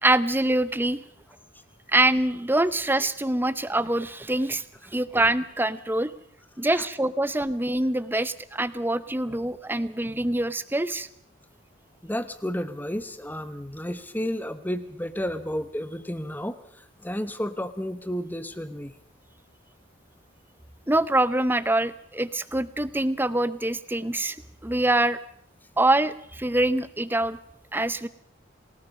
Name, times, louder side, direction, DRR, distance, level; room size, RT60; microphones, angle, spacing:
voice 1, 0.0-1.0 1.9-4.6 4.9-6.1 6.6-11.1 20.9-24.4 24.6-25.2 25.8-27.4 27.7-28.1, right 1 dB, 10° right, 15 dB, 0.7 m, -24 dB
voice 2, 12.0-18.9, equal, 10° left, 11 dB, 1.1 m, -32 dB
28.5 x 18.5 x 5.4 m, 0.71 s
head